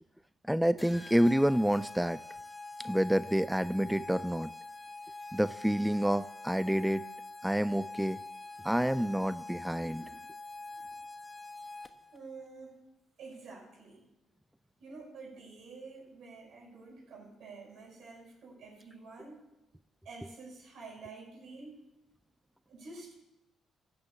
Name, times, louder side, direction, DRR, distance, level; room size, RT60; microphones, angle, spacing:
voice 1, 0.5-2.2 2.8-4.5 5.3-7.1 7.4-8.2 8.6-10.1, equal, 5° right, 15 dB, 0.3 m, -28 dB
sound 1, 0.8-12.2, left 3 dB, 15° left, 1.3 m, -45 dB
voice 2, 12.1-12.8 13.2-14.0 14.8-19.4 20.0-21.7 22.7-23.1, right 3 dB, 65° right, -2 dB, 5.7 m, -49 dB
14.5 x 6.4 x 8.4 m, 0.96 s
hypercardioid pair, 55°, 0 cm